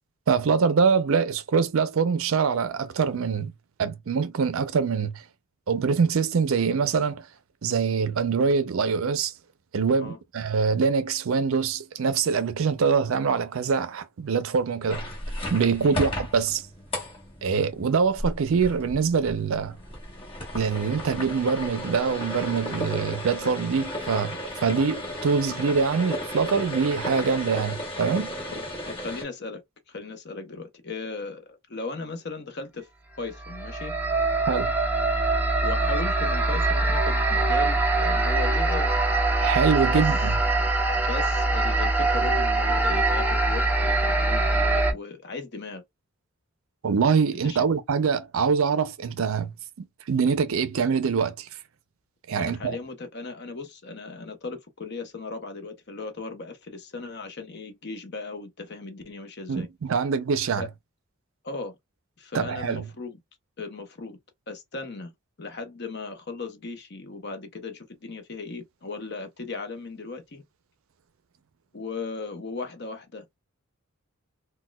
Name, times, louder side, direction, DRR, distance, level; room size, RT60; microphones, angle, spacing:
voice 1, 0.3-3.5 3.8-5.2 5.7-7.3 7.6-9.3 9.7-15.0 15.5-16.6 17.4-19.8 20.5-28.3 34.5-34.7 39.4-40.3 46.8-49.5 49.8-51.5 52.3-52.8 59.5-60.6 62.3-62.8, right 5 dB, 65° right, 0.4 m, -24 dB
sound 1, 14.9-29.2, left 1 dB, 25° left, 1.1 m, -34 dB
voice 2, 28.5-29.6 29.9-32.9 33.2-33.9 35.6-38.9 39.9-40.1 41.1-45.8 47.3-47.6 52.4-59.7 60.6-60.7 61.4-61.7 62.2-63.2 63.6-64.2 64.5-65.1 65.4-70.4 71.7-73.4, left 3 dB, 50° left, 0.7 m, -37 dB
sound 2, 33.4-44.9, right 2 dB, 10° right, 0.5 m, -23 dB
4.0 x 2.2 x 2.2 m
head